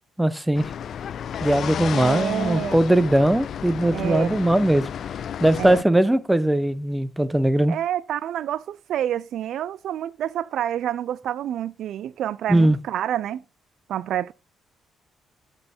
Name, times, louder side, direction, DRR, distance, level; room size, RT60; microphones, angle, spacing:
voice 1, 0.2-0.6 1.4-4.9 5.4-7.7 12.5-12.8, right 1 dB, 5° right, 0.8 m, -20 dB
sound 1, 0.5-5.8, left 9 dB, 60° left, 0.3 m, -32 dB
voice 2, 1.9-2.8 3.9-4.4 5.6-5.8 7.7-13.4 13.9-14.3, right 11 dB, 75° right, 0.3 m, -28 dB
7.8 x 5.5 x 4.3 m
cardioid pair, 90°, 0 cm